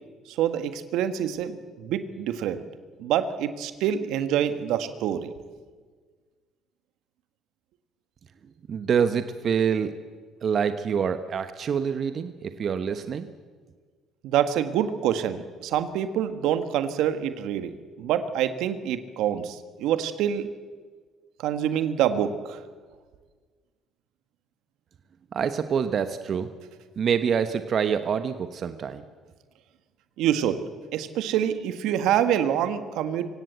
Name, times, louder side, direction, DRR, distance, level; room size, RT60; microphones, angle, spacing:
voice 1, 0.3-2.6 3.0-5.3 14.2-20.5 21.4-22.6 30.2-33.3, right 10 dB, 75° right, 11 dB, 1.5 m, -26 dB
voice 2, 8.7-9.9 10.4-13.3 25.3-26.5 27.0-29.0, right 7 dB, 50° right, 10 dB, 1.1 m, -26 dB
25.0 x 17.0 x 8.1 m, 1.5 s
supercardioid pair, 65°, 0 cm